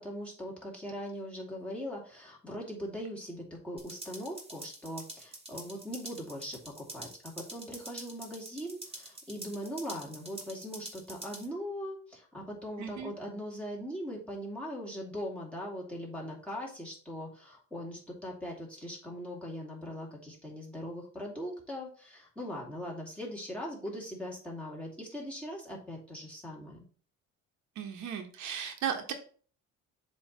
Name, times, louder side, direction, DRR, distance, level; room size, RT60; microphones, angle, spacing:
voice 1, 0.0-26.8, equal, 5° left, -4 dB, 2.6 m, -40 dB
sound 1, 3.8-11.5, right 2 dB, 20° right, 1.9 m, -46 dB
voice 2, 12.8-13.1 27.8-29.1, right 8 dB, 70° right, 4 dB, 1.2 m, -36 dB
7.3 x 3.2 x 5.5 m, 0.41 s
cardioid pair, 135°, 29 cm